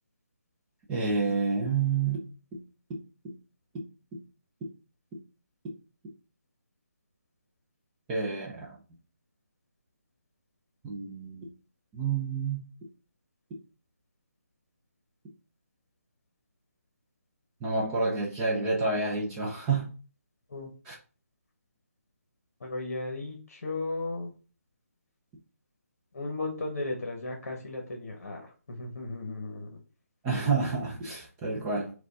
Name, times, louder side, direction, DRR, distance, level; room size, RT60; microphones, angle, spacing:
voice 1, 0.9-2.3 2.5-2.6 8.1-8.8 10.8-11.5 11.9-12.6 17.6-19.9 20.9-21.0 30.2-31.9, right 4 dB, 10° right, 0.4 m, -29 dB
voice 2, 22.6-24.3 26.1-29.7, left 2 dB, 60° left, 1.0 m, -35 dB
4.9 x 2.3 x 3.9 m
hypercardioid pair, 165°, 8 cm